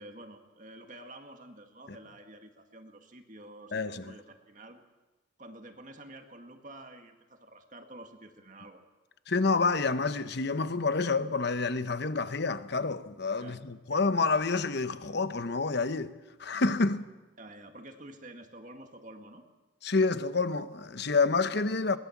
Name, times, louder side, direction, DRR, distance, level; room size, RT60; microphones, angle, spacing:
voice 1, 0.0-4.8 5.4-8.8 13.4-13.6 17.4-19.4, right 1 dB, 40° right, 1.9 m, -49 dB
voice 2, 3.7-4.1 9.3-16.1 16.4-17.1 19.8-22.0, left 4 dB, 55° left, 0.9 m, -28 dB
22.0 x 19.5 x 7.3 m
head